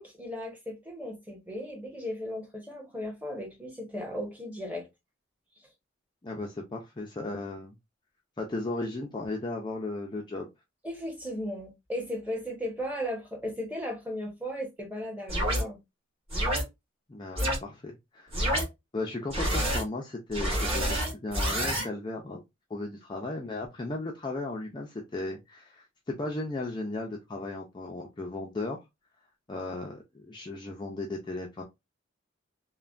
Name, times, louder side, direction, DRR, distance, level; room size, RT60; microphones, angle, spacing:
voice 1, 0.0-4.9 10.8-15.8, equal, 10° right, 1.0 m, -36 dB
voice 2, 6.2-7.7 8.4-10.5 17.1-18.3 18.9-22.4 22.7-28.8 29.5-31.6, left 2 dB, 25° left, 0.5 m, -36 dB
sound 1, 15.3-15.6 16.3-16.6 17.4-17.6 18.3-18.6 19.3-19.8 20.3-21.8, equal, 30° right, 1.8 m, -27 dB
3.2 x 2.2 x 2.4 m
head